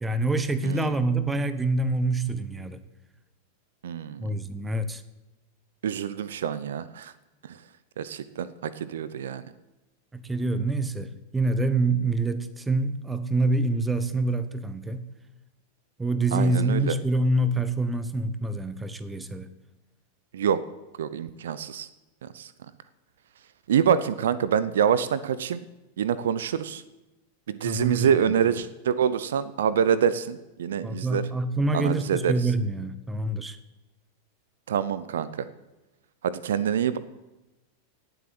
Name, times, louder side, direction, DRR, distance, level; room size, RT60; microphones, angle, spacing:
voice 1, 0.0-2.8 4.2-5.0 10.1-15.1 16.0-19.5 27.6-28.3 30.8-33.6, right 2 dB, 10° right, 13 dB, 1.0 m, -26 dB
voice 2, 3.8-4.2 5.8-7.1 8.0-9.4 16.3-16.9 20.3-20.6 21.0-21.9 22.2-22.5 23.7-25.6 26.0-26.8 27.5-31.2 31.7-32.3 34.7-35.5 36.2-37.0, right 8 dB, 65° right, 16 dB, 0.6 m, -26 dB
18.0 x 7.9 x 7.6 m, 1.0 s
figure-of-eight pair, 90°, 0 cm